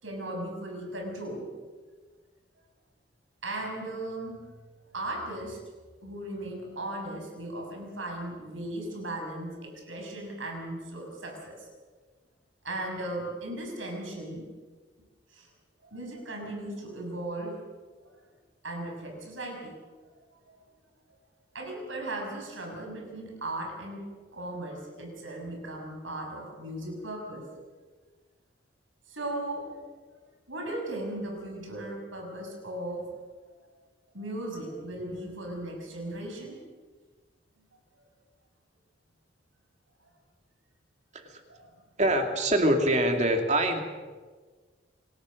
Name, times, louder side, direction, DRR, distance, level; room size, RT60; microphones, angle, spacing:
voice 1, 0.0-1.5 3.4-4.5 4.9-5.6 6.0-11.7 12.6-14.4 15.3-15.5 15.8-17.6 18.0-18.1 18.6-19.8 21.5-27.5 29.1-29.8 30.5-33.1 34.1-36.6 41.5-41.8, right 1 dB, 80° right, 2 dB, 6.8 m, -37 dB
voice 2, 42.0-43.8, right 1 dB, 35° right, 4 dB, 2.5 m, -24 dB
27.0 x 18.5 x 6.5 m, 1.4 s
head